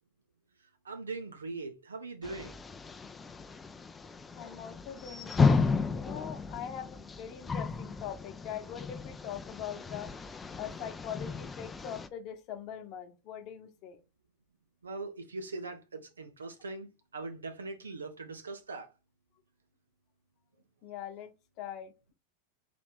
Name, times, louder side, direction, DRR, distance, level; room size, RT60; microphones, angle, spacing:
voice 1, 0.8-2.6 14.8-18.9, right 3 dB, 80° right, 0.8 m, -41 dB
sound 1, 2.2-12.1, left 4 dB, 15° left, 0.5 m, -33 dB
voice 2, 4.3-10.1 10.6-14.0 20.8-22.1, left 9 dB, 45° left, 1.0 m, -42 dB
4.2 x 2.9 x 3.5 m
figure-of-eight pair, 90°, 0 cm